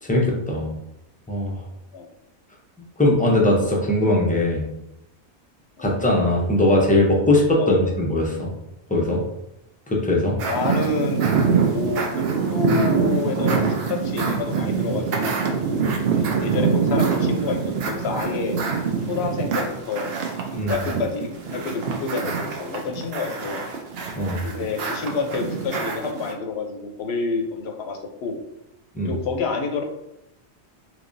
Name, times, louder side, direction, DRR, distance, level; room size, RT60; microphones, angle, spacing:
voice 1, 0.0-0.7 1.3-1.5 3.0-4.6 5.8-8.5 8.9-9.2 9.9-10.4 20.5-20.7 24.1-24.4 28.9-29.1, left 1 dB, 10° left, -2 dB, 0.5 m, -20 dB
voice 2, 10.4-11.3 11.7-18.6 19.0-20.1 20.7-23.6 24.4-28.4 29.0-29.8, left 4 dB, 75° left, 3 dB, 0.8 m, -28 dB
sound 1, 10.4-26.3, right 5 dB, 70° right, 0.8 m, -24 dB
3.5 x 3.0 x 2.6 m, 0.85 s
omnidirectional pair, 1.1 m